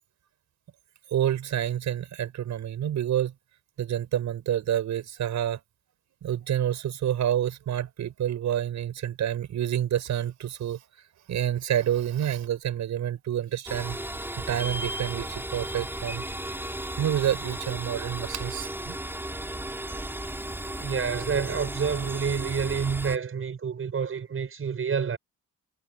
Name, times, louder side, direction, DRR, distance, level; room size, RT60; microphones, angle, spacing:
voice 1, 1.1-3.3 3.8-5.6 6.2-10.8 11.3-14.0 14.4-16.2 17.0-19.0, right 10 dB, 70° right, 6.7 m, -28 dB
sound 1, 13.7-23.2, right 1 dB, 5° right, 3.7 m, -35 dB
voice 2, 20.8-25.2, right 6 dB, 45° right, 6.9 m, -28 dB
cardioid pair, 90°, 30 cm